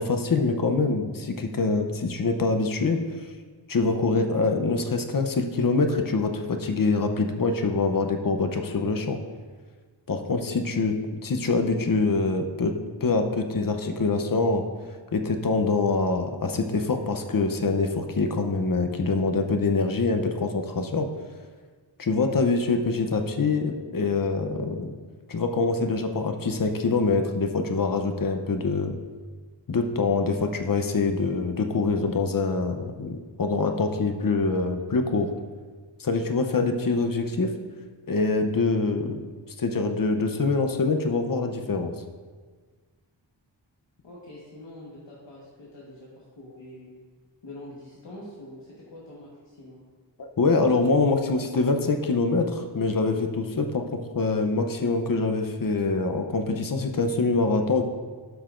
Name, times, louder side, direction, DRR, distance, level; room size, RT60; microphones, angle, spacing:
voice 1, 0.0-3.0 3.7-9.2 10.1-11.0 11.2-12.7 13.0-14.6 15.1-21.1 22.0-24.9 25.3-29.0 29.7-35.3 36.0-37.5 38.1-39.2 39.6-41.9 50.2-57.8, left 3 dB, 45° left, 5 dB, 0.7 m, -25 dB
voice 2, 44.0-46.9 47.4-49.8, left 1 dB, 70° left, -6 dB, 1.4 m, -45 dB
12.5 x 5.6 x 2.5 m, 1.5 s
wide cardioid pair, 75°, 45 cm